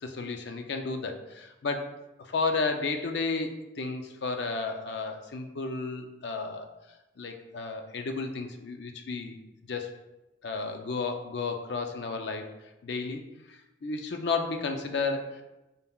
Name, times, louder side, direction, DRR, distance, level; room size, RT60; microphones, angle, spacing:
voice 1, 0.0-1.9 2.2-6.7 7.2-9.4 9.7-9.9 10.4-12.5 12.8-13.2 13.5-15.4, left 4 dB, 65° left, 5 dB, 0.5 m, -32 dB
5.4 x 3.6 x 2.3 m, 1.0 s
head